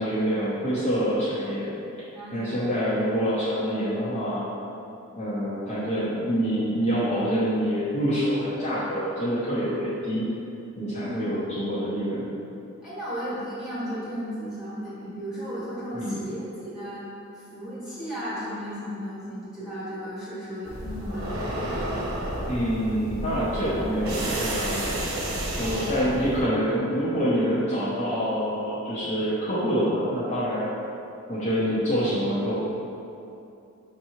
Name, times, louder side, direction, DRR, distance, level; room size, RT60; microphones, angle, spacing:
voice 1, 0.0-1.7 2.3-4.4 5.2-10.3 10.8-12.2 15.9-16.2 22.5-25.0 25.5-30.7 31.3-32.5, equal, 30° left, -11 dB, 0.7 m, -26 dB
voice 2, 2.1-2.7 11.0-11.4 12.8-17.0 17.3-21.6 25.6-26.0, equal, 5° right, -12 dB, 1.5 m, -35 dB
sound 1, 20.7-26.4, right 1 dB, 85° right, 0.8 m, -31 dB
6.0 x 2.9 x 2.7 m, 2.7 s
head